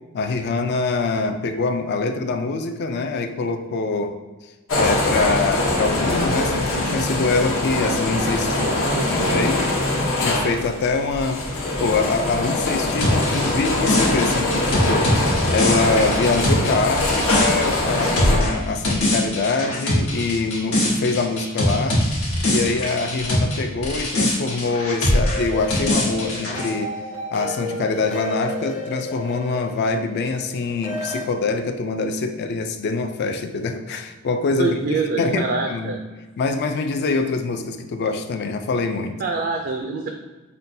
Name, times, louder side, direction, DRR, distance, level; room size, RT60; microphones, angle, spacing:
voice 1, 0.1-4.2 4.7-8.7 9.1-9.7 10.2-11.5 11.8-15.1 15.5-22.0 22.5-26.9 27.3-35.9 36.4-39.2, left 3 dB, 50° left, 7 dB, 0.3 m, -24 dB
sound 1, 4.7-18.4, left 2 dB, 65° left, 0.8 m, -23 dB
voice 2, 8.5-9.4 34.6-36.0 39.2-40.1, right 4 dB, 45° right, 2 dB, 0.3 m, -26 dB
sound 2, 13.0-23.6 23.8-26.7, left 1 dB, 80° left, 1.2 m, -22 dB
sound 3, 25.2-31.2, left 1 dB, 35° left, 0.7 m, -33 dB
5.5 x 2.2 x 2.6 m, 1.2 s
head